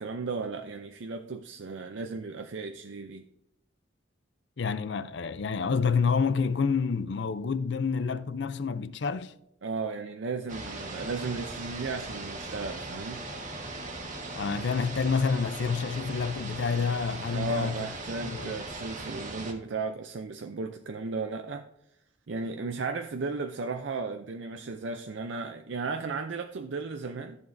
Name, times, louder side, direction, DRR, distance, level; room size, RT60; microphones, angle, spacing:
voice 1, 0.0-3.3 9.6-13.2 17.3-21.6 22.3-27.4, right 4 dB, 70° right, 0.5 m, -35 dB
voice 2, 4.6-9.3 14.3-17.9 18.2-18.6, left 5 dB, 65° left, 0.5 m, -28 dB
sound 1, 10.5-19.5, right 2 dB, 40° right, 1.4 m, -39 dB
14.0 x 7.0 x 2.6 m
head